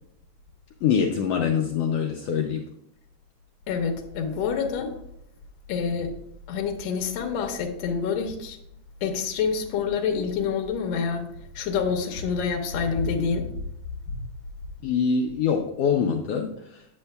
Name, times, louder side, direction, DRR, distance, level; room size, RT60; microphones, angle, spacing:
voice 1, 0.8-2.6 14.8-16.9, left 6 dB, 90° left, 3 dB, 1.3 m, -24 dB
voice 2, 3.7-4.9 5.7-6.1 6.5-8.6 9.0-11.3 11.6-13.5 14.1-14.2, left 6 dB, 70° left, 3 dB, 2.0 m, -27 dB
8.2 x 8.0 x 2.2 m, 0.73 s
omnidirectional pair, 3.4 m